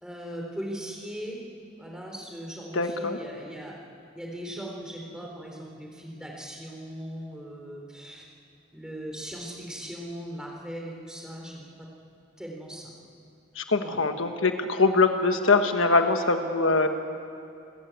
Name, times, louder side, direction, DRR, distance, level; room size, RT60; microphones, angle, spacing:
voice 1, 0.0-1.4 1.8-3.7 4.1-8.2 8.7-11.7 12.4-12.9 13.7-14.0, equal, 5° right, -1 dB, 3.6 m, -39 dB
voice 2, 2.7-3.2 13.6-16.9, left 3 dB, 80° left, 6 dB, 1.3 m, -23 dB
29.0 x 14.0 x 8.4 m, 2.7 s
head